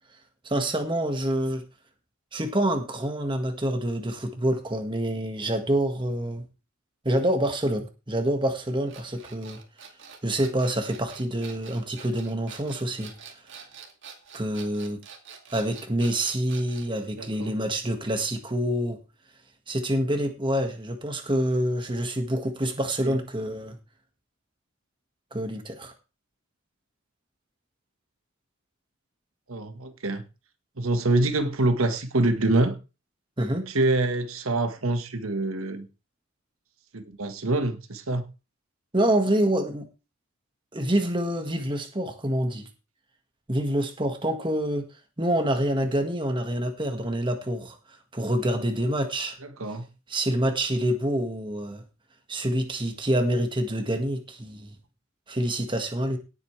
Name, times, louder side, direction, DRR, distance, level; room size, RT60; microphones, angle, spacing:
voice 1, 0.5-1.6 2.3-6.4 7.1-9.6 10.2-13.1 14.3-15.0 15.5-19.0 19.7-23.8 25.3-25.9 33.4-33.7 38.9-39.9 40.7-42.7 43.5-44.9 45.2-47.8 48.1-49.4 50.1-51.8 52.3-54.7 55.3-56.2, right 1 dB, 25° right, 1.7 m, -26 dB
sound 1, 8.9-16.9, right 6 dB, 60° right, 2.4 m, -46 dB
voice 2, 17.2-17.6 23.0-23.2 29.5-30.2 30.8-32.8 33.7-35.9 36.9-38.2 49.4-49.9, right 2 dB, 85° right, 1.5 m, -25 dB
17.5 x 8.2 x 3.3 m
head